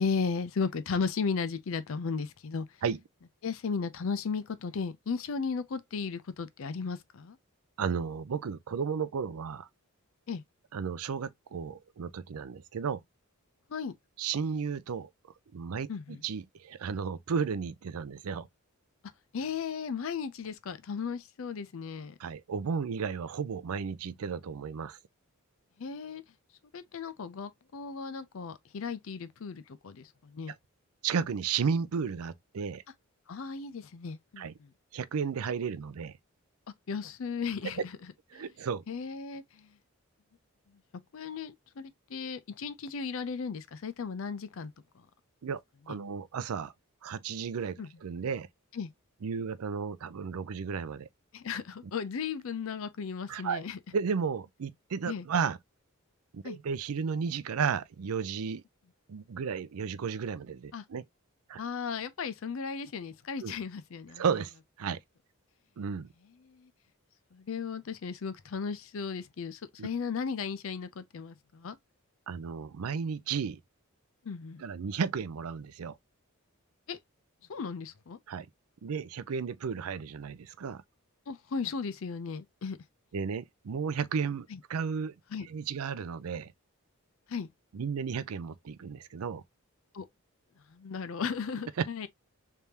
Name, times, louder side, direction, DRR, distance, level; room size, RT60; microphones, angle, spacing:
voice 1, 0.0-2.7 3.4-7.4 10.3-10.4 13.7-13.9 15.9-16.2 19.3-22.1 25.8-26.2 26.7-30.5 33.3-34.7 36.9-37.9 38.3-38.4 38.9-39.7 41.1-44.7 47.8-47.9 48.7-48.9 51.3-53.8 55.1-55.3 56.4-56.6 60.7-60.8 61.6-64.2 66.4-66.7 67.3-71.8 74.2-74.6 76.9-77.0 77.5-78.2 81.3-82.8 84.5-84.6 85.3-85.5 87.3-87.5 89.9-90.1 90.7-92.1, left 5 dB, 65° left, 0.5 m, -35 dB
voice 2, 7.8-9.7 10.7-13.0 14.2-15.1 15.5-18.5 22.2-25.0 30.5-30.6 31.0-32.8 34.4-34.6 34.9-36.2 37.8-37.9 38.3-38.8 45.4-45.6 45.9-46.7 47.0-48.5 49.2-51.1 53.3-53.6 53.9-55.6 56.3-58.6 59.1-61.0 61.5-61.6 63.4-63.6 64.2-64.5 64.8-65.0 65.8-66.1 69.8-69.9 72.3-73.6 74.6-76.0 78.3-78.5 78.8-80.8 83.1-85.1 85.4-86.5 87.7-89.4 91.8-91.9, right 6 dB, 80° right, 0.4 m, -33 dB
3.4 x 3.3 x 2.8 m
head